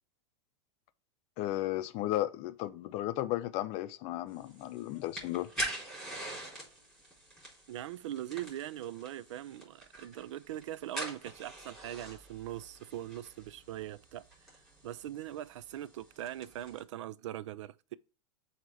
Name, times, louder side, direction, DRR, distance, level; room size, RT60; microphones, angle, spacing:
voice 1, 1.4-5.5, left 14 dB, 45° left, 0.5 m, -34 dB
sound 1, 4.3-16.8, right 1 dB, ahead, 3.7 m, -45 dB
voice 2, 7.7-14.2 14.8-17.9, right 12 dB, 85° right, 0.4 m, -41 dB
7.5 x 2.9 x 4.7 m
supercardioid pair, 140°, 15 cm